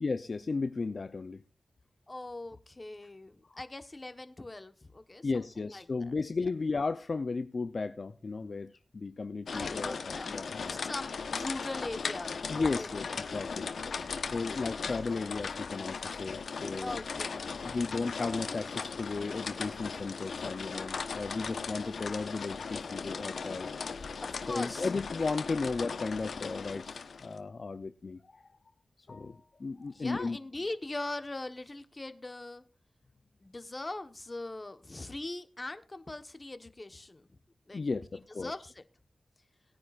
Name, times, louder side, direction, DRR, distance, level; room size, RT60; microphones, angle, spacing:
voice 1, 0.0-1.4 5.2-10.8 12.5-13.7 14.3-17.0 17.7-23.7 24.5-28.4 29.1-30.4 37.7-38.5, left 4 dB, 55° left, 9 dB, 0.6 m, -35 dB
voice 2, 2.1-6.1 9.5-10.3 10.6-12.3 12.7-12.9 13.8-14.2 16.8-17.8 24.4-24.9 29.9-32.6 33.4-37.3 37.7-37.8 38.1-38.8, left 2 dB, 30° left, 9 dB, 1.2 m, -41 dB
sound 1, 9.5-27.4, left 5 dB, 80° left, 1.0 m, -38 dB
19.5 x 9.6 x 2.5 m, 0.33 s
cardioid pair, 65°, 0 cm